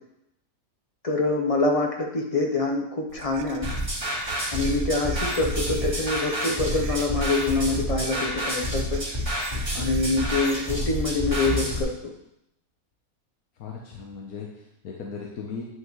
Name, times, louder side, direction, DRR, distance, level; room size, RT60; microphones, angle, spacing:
voice 1, 1.0-3.7 4.5-9.0 9.7-11.9, left 3 dB, 30° left, 1 dB, 0.8 m, -25 dB
sound 1, 3.1-10.7, right 8 dB, 85° right, 1.1 m, -41 dB
sound 2, 3.6-11.8, equal, 20° right, 2.8 m, -28 dB
voice 2, 13.5-15.6, left 5 dB, 90° left, -2 dB, 1.4 m, -37 dB
9.5 x 5.7 x 3.1 m, 0.83 s
omnidirectional pair, 1.5 m